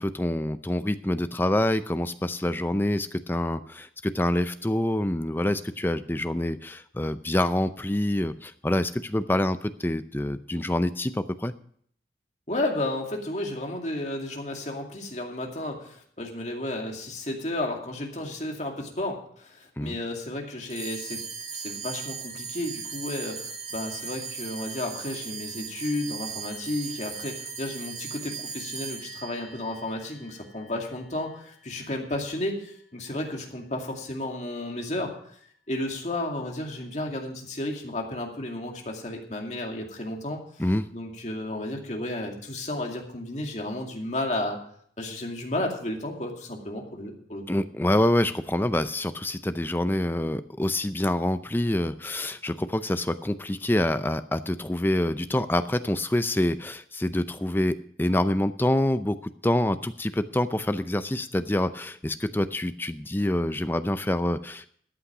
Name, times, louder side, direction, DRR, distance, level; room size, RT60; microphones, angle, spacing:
voice 1, 0.0-11.5 19.8-20.0 40.6-40.9 47.5-64.7, left 1 dB, 10° left, 11 dB, 0.5 m, -26 dB
voice 2, 12.5-21.2 21.5-35.1 35.7-40.4 40.9-44.6 45.0-47.6, left 1 dB, 40° left, 1 dB, 2.3 m, -32 dB
sound 1, 20.7-31.3, right 5 dB, 40° right, 2.0 m, -38 dB
13.5 x 8.8 x 4.9 m, 0.63 s
head